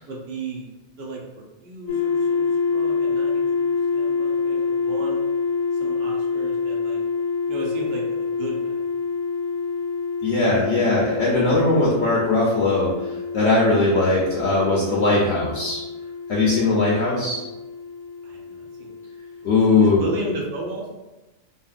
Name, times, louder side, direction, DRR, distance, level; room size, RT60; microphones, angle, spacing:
voice 1, 0.0-0.7 1.0-3.4 3.9-5.2 5.8-7.0 7.5-9.3 15.0-15.3 16.4-17.2 18.2-18.9 19.5-20.9, right 2 dB, 55° right, -2 dB, 0.8 m, -35 dB
sound 1, 1.9-19.8, left 5 dB, 85° left, 1.1 m, -27 dB
voice 2, 10.2-15.8 16.3-17.4 19.4-20.0, left 3 dB, 65° left, -5 dB, 0.8 m, -20 dB
2.7 x 2.6 x 2.4 m, 1.1 s
omnidirectional pair, 1.3 m